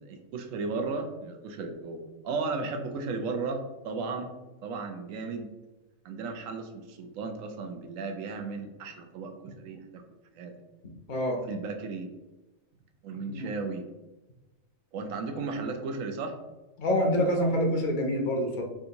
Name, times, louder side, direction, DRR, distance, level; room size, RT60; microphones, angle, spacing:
voice 1, 0.0-4.3 4.6-5.5 6.0-10.0 10.4-10.5 11.4-12.1 13.0-13.8 14.9-16.4, right 4 dB, 75° right, 5 dB, 1.0 m, -35 dB
voice 2, 16.8-18.6, equal, 50° left, 2 dB, 0.6 m, -26 dB
3.5 x 2.5 x 2.8 m, 1.1 s
omnidirectional pair, 1.4 m